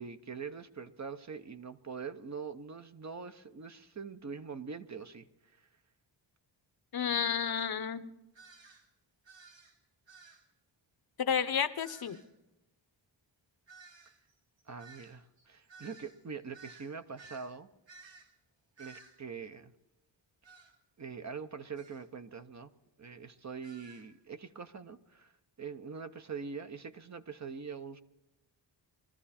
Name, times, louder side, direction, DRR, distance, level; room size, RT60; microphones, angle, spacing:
voice 1, 0.0-5.7 14.7-17.7 18.8-19.7 20.5-20.6 21.0-22.7 23.0-25.3 25.6-28.0, right 5 dB, 40° right, 9 dB, 0.8 m, -43 dB
voice 2, 6.9-8.1 11.2-12.2, left 7 dB, 55° left, 13 dB, 0.8 m, -31 dB
sound 1, 7.6-7.7 8.4-8.9 9.3-9.8 10.1-10.5 11.8-12.3 13.7-17.5 17.9-18.3 18.8-19.2 20.4-20.7 21.8-22.0 23.6-24.1, right 4 dB, 75° right, 2.7 m, -55 dB
22.0 x 13.5 x 4.3 m, 0.96 s
wide cardioid pair, 110°, 45 cm